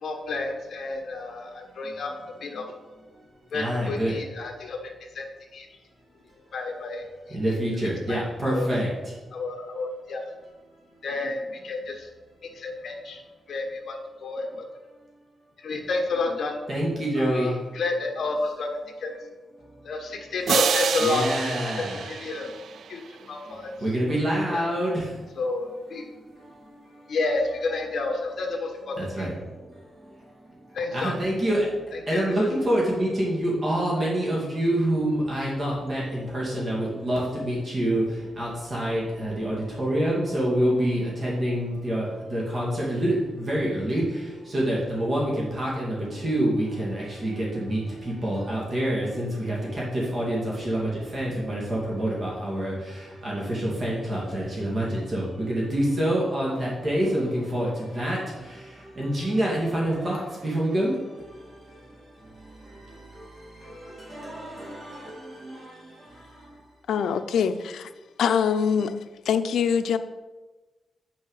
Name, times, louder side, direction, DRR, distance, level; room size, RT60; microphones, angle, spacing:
voice 1, 0.0-2.1 2.4-2.7 3.5-5.3 5.5-5.7 6.5-7.4 8.1-8.7 9.3-10.2 11.0-12.1 12.5-13.2 13.5-14.7 15.6-16.5 17.2-18.7 19.0-19.1 19.8-22.5 22.9-23.0 23.3-23.7 24.5-24.6 25.4-26.1 27.1-29.3 30.7-31.1 32.1-32.5, left 3 dB, 55° left, 2 dB, 1.6 m, -30 dB
voice 2, 3.5-4.2 6.3-6.4 7.3-9.1 10.9-11.0 16.7-17.5 19.6-19.8 20.1-20.3 21.0-22.0 23.1-25.3 26.2-27.1 29.0-30.3 30.6-66.6, right 1 dB, 35° right, -5 dB, 2.5 m, -27 dB
sound 1, 20.5-23.1, right 8 dB, 75° right, 0.3 m, -28 dB
voice 3, 66.9-67.9 68.2-69.0 69.3-70.0, left 7 dB, 90° left, 11 dB, 0.5 m, -23 dB
8.6 x 6.2 x 5.7 m, 1.2 s
wide cardioid pair, 155°, 0 cm